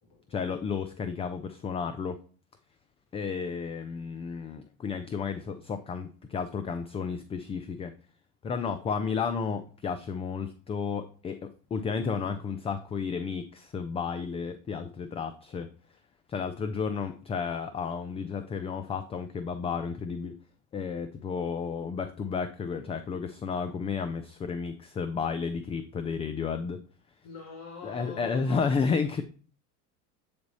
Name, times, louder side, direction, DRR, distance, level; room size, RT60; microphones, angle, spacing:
voice 1, 0.3-2.2 3.1-7.9 8.4-15.7 16.3-20.3 20.7-26.8 27.8-29.2, left 5 dB, 15° left, 10 dB, 0.3 m, -32 dB
voice 2, 27.2-28.6, left 5 dB, 55° left, 2 dB, 2.1 m, -44 dB
7.9 x 3.4 x 4.0 m, 0.39 s
hypercardioid pair, 85°, 45 cm